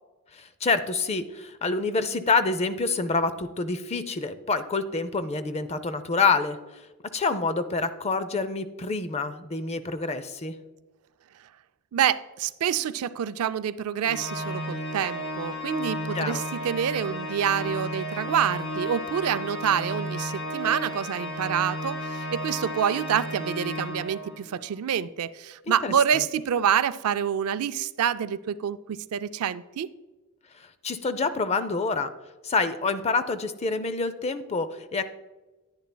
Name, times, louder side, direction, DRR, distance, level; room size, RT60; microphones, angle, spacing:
voice 1, 0.3-6.8 7.1-10.6 16.1-16.4 25.7-25.9 30.6-32.1 32.4-35.0, left 4 dB, 30° left, 12 dB, 0.5 m, -27 dB
voice 2, 11.9-29.9, right 8 dB, 80° right, 15 dB, 0.4 m, -27 dB
Organ, 14.0-24.6, equal, 75° left, 1.9 m, -33 dB
10.0 x 9.7 x 2.2 m, 1.2 s
head